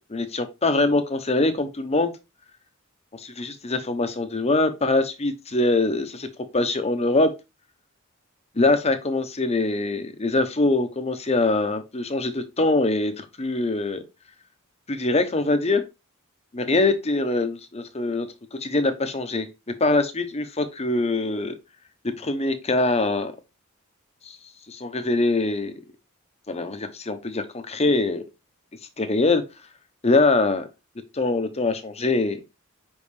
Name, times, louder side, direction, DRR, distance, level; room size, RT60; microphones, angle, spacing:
voice 1, 0.1-2.1 3.1-6.3 6.5-7.3 8.5-14.0 14.9-15.8 16.5-19.5 19.8-21.5 22.2-23.3 24.2-24.4 24.7-25.7 26.5-28.2 29.0-29.4 30.0-30.7 31.1-32.4, left 2 dB, 30° left, 1.0 m, -23 dB
5.4 x 5.4 x 3.4 m
head